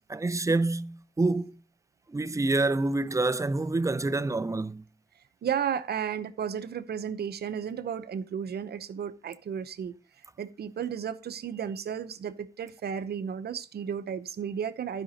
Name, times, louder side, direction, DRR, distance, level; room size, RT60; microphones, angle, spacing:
voice 1, 0.1-1.6 2.1-4.8, right 2 dB, 20° right, 0.5 m, -27 dB
voice 2, 5.4-10.0 10.4-15.0, right 8 dB, 70° right, 0.8 m, -33 dB
12.0 x 5.1 x 5.2 m
cardioid pair, 65°, 17 cm